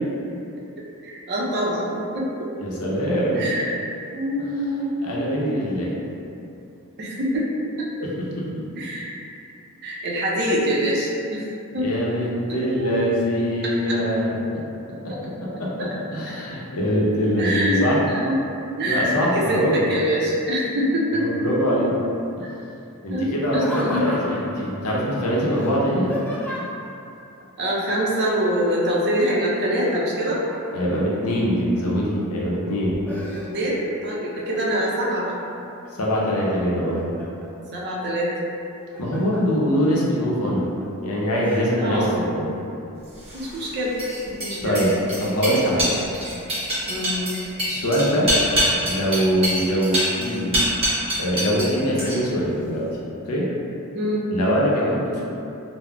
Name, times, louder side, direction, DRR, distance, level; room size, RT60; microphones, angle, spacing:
voice 1, 1.0-2.5 3.3-3.7 4.1-4.9 7.0-7.5 7.8-8.1 8.7-9.1 9.8-11.5 11.7-11.9 12.8-12.9 15.1-15.2 15.8-15.9 16.2-16.4 17.4-18.4 18.8-21.4 23.1-24.1 27.6-30.4 33.3-35.4 37.7-38.3 41.7-42.1 43.3-44.8 46.9-47.2 53.9-54.2, equal, 50° right, -5 dB, 0.5 m, -24 dB
voice 2, 2.6-3.5 5.0-5.9 8.4-8.5 11.8-14.6 15.0-18.0 18.8-19.8 21.1-22.0 22.4-22.5 23.0-26.1 30.7-33.0 35.9-37.1 39.0-40.7 41.0-42.5 44.6-44.9 45.2-45.9 47.6-48.3 48.9-50.5 51.2-52.9 53.2-53.5 54.3-55.2, equal, 80° left, -4 dB, 0.6 m, -23 dB
Laughter, 23.5-24.6 25.5-26.9 28.6-29.1 29.4-31.0 31.6-32.2 32.6-33.9 34.3-34.9 35.4-36.1 36.6-37.5 38.6-39.4 39.9-40.0 40.6-40.8 41.4-41.6, equal, 10° left, 0.3 m, -35 dB
sound 1, 43.2-51.7 52.0-52.4, equal, 25° right, 0.8 m, -25 dB
3.6 x 2.0 x 2.2 m, 2.7 s
head